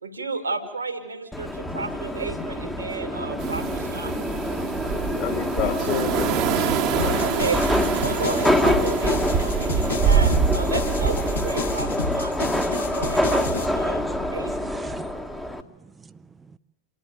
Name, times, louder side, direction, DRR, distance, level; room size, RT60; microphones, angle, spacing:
voice 1, 0.0-4.2 7.2-7.7 8.0-12.5 13.0-14.0 14.3-14.7, right 4 dB, 75° right, 5 dB, 2.0 m, -32 dB
Subway metro underground, 1.3-15.6, left 1 dB, 5° left, 1.3 m, -26 dB
sound 1, 3.4-11.7, right 7 dB, 40° right, 1.3 m, -26 dB
voice 2, 5.1-7.2, left 9 dB, 45° left, 2 dB, 2.9 m, -30 dB
sound 2, 7.0-13.6, left 2 dB, 85° left, 6.0 m, -31 dB
voice 3, 14.3-16.6, right 4 dB, 15° right, 15 dB, 0.7 m, -47 dB
28.0 x 11.0 x 9.1 m, 1.2 s
figure-of-eight pair, 90°, 0 cm